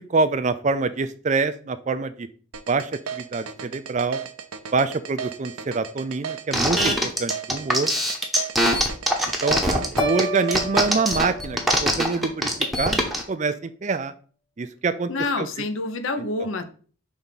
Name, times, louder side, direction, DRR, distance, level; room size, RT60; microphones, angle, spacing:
voice 1, 0.1-2.3 2.7-4.2 4.7-7.9 9.4-12.5 12.8-13.0 13.3-14.1 14.6-15.1 15.4-15.5 16.4-16.5, right 4 dB, 35° right, 12 dB, 0.4 m, -25 dB
sound 1, 2.5-11.0, right 7 dB, 85° right, 0.7 m, -35 dB
sound 2, 6.5-13.2, equal, ahead, 0.9 m, -22 dB
sound 3, 10.0-12.3, equal, 90° left, 2.8 m, -32 dB
voice 2, 15.1-16.6, left 3 dB, 65° left, 8 dB, 0.8 m, -27 dB
5.2 x 3.5 x 5.7 m, 0.41 s
head